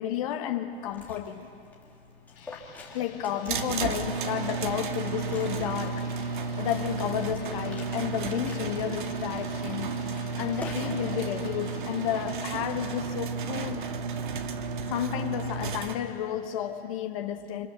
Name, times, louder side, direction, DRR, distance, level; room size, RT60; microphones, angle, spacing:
voice 1, 0.0-1.5 2.9-6.2 6.6-10.0 10.4-13.9 14.9-17.7, left 10 dB, 35° left, 1.1 m, -32 dB
Liquid, 0.7-11.0, left 3 dB, 5° left, 2.0 m, -48 dB
sound 1, 2.3-12.6, left 6 dB, 60° left, 5.2 m, -52 dB
sound 2, 3.5-15.9, right 5 dB, 50° right, 1.6 m, -33 dB
29.5 x 26.0 x 6.7 m
hypercardioid pair, 155°, 32 cm